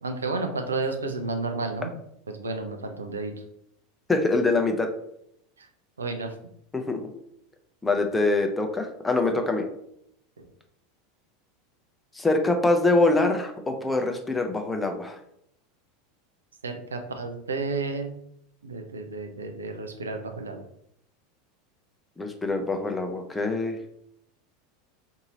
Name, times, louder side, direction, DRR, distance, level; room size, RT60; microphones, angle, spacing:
voice 1, 0.0-1.9 2.3-3.3 5.6-5.7 6.0-6.3 10.4-10.5 16.6-18.2 18.6-20.6, right 3 dB, 80° right, 5 dB, 0.5 m, -31 dB
voice 2, 4.1-4.9 6.7-7.0 7.8-9.7 12.1-15.2 22.2-23.8, left 2 dB, 10° left, 4 dB, 0.6 m, -24 dB
2.8 x 2.7 x 4.0 m, 0.72 s
figure-of-eight pair, 80°, 0 cm